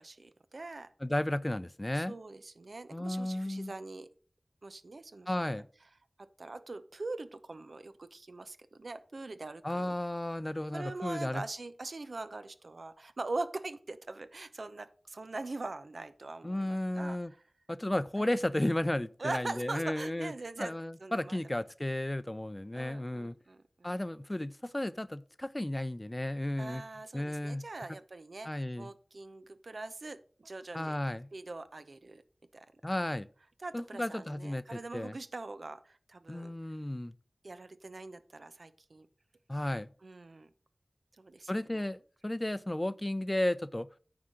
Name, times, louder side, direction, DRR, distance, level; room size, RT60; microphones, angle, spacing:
voice 1, 0.0-0.9 1.9-4.1 4.6-5.6 6.2-9.9 10.7-17.2 18.2-18.3 19.2-20.7 21.0-21.6 22.7-23.9 26.6-31.0 31.3-32.2 32.5-32.7 33.6-36.5 37.4-39.1 40.0-40.5 41.2-41.8, right 3 dB, 75° right, 0.8 m, -42 dB
voice 2, 1.0-2.1 2.9-3.7 5.3-5.7 9.6-11.4 16.4-17.3 17.7-20.3 20.6-23.4 23.8-26.8 27.1-27.6 28.4-28.9 30.7-31.3 32.8-33.3 33.7-35.1 36.3-37.1 39.5-39.9 41.5-43.9, left 1 dB, 25° left, 0.5 m, -33 dB
9.5 x 4.9 x 6.4 m
wide cardioid pair, 55°, 0 cm